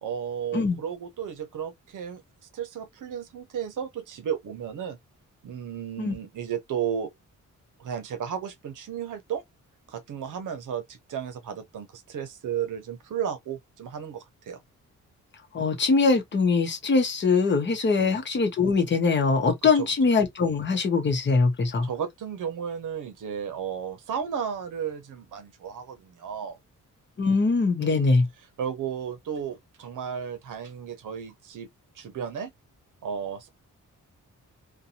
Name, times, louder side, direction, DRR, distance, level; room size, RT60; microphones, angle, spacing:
voice 1, 0.0-2.2 2.5-5.0 5.4-7.1 7.8-9.4 9.9-14.6 18.0-18.2 19.6-19.9 21.8-26.6 27.8-28.2 28.6-31.7 32.0-32.5 33.0-33.5, right 8 dB, 70° right, 0.7 m, -34 dB
voice 2, 15.5-21.9 27.2-28.3, left 4 dB, 35° left, 0.8 m, -22 dB
2.6 x 2.2 x 2.7 m
wide cardioid pair, 175°, 32 cm